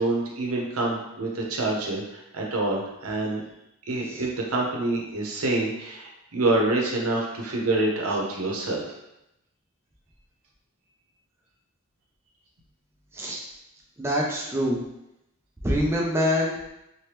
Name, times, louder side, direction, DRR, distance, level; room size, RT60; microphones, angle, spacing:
voice 1, 0.0-3.4 3.9-8.9, right 2 dB, 90° right, -1 dB, 0.7 m, -26 dB
voice 2, 14.0-14.8 15.6-16.5, equal, 10° right, -3 dB, 0.4 m, -25 dB
3.2 x 2.1 x 2.9 m, 0.87 s
head